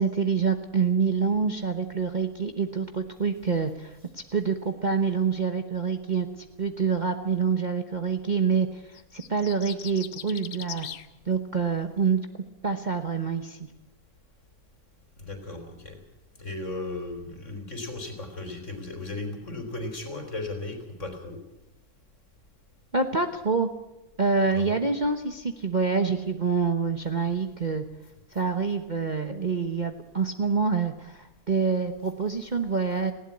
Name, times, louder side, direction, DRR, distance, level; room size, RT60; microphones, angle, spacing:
voice 1, 0.0-6.3 6.6-10.9 11.3-12.2 12.6-13.7 22.9-23.7 24.2-27.8 28.3-33.1, right 5 dB, 35° right, 6 dB, 1.1 m, -26 dB
sound 1, 8.9-11.1, left 10 dB, 90° left, 1.4 m, -40 dB
voice 2, 15.2-16.0 16.4-21.4 24.5-24.7, left 2 dB, 50° left, 5 dB, 4.1 m, -36 dB
19.5 x 16.0 x 8.4 m, 0.97 s
omnidirectional pair, 1.6 m